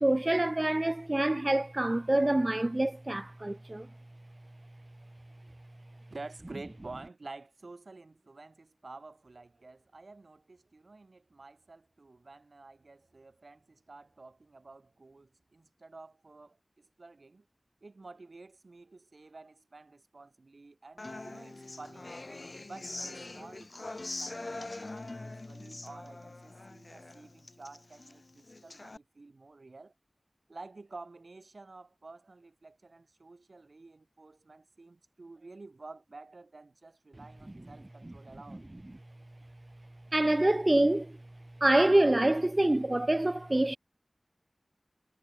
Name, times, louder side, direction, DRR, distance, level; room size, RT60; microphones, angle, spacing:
voice 1, 0.0-3.9 40.1-41.2 41.6-43.8, right 1 dB, 35° right, 0.6 m, -26 dB
voice 2, 6.1-17.5 17.8-22.1 22.7-29.9 30.5-38.7, right 3 dB, 75° right, 2.4 m, -50 dB
Human voice / Acoustic guitar, 21.0-29.0, left 2 dB, 55° left, 2.4 m, -43 dB
wide cardioid pair, 45°, 0 cm